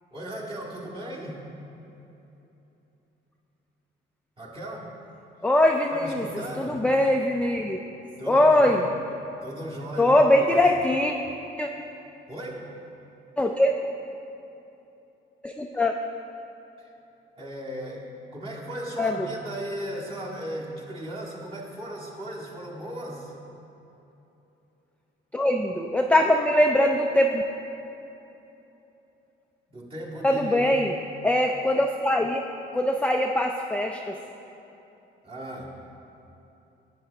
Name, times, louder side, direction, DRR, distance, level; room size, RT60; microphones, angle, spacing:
voice 1, 0.1-1.4 4.4-4.9 5.9-6.9 8.2-8.8 9.4-10.7 12.3-12.7 16.8-16.9 17.4-23.3 29.7-30.7 35.2-35.7, right 1 dB, 30° right, -4 dB, 1.9 m, -36 dB
voice 2, 5.4-6.3 6.6-7.8 8.3-8.8 10.0-11.1 11.6-11.7 13.4-13.7 15.4-15.9 19.0-19.1 25.3-27.4 30.2-30.9 31.2-32.4 32.7-34.2, left 1 dB, 5° left, 2 dB, 0.4 m, -22 dB
10.0 x 8.2 x 3.4 m, 3.0 s
cardioid pair, 90°, 20 cm